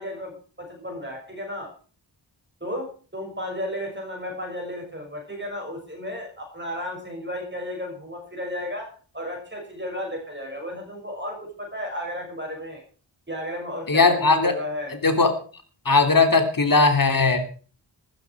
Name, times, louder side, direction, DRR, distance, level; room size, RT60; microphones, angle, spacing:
voice 1, 0.0-1.7 2.6-8.9 9.1-12.8 13.3-14.9, left 1 dB, 25° right, 2 dB, 6.6 m, -33 dB
voice 2, 13.9-14.5 15.0-15.3 15.8-17.4, left 3 dB, 45° left, 6 dB, 3.2 m, -18 dB
14.0 x 14.0 x 4.8 m, 0.39 s
wide cardioid pair, 60°, 45 cm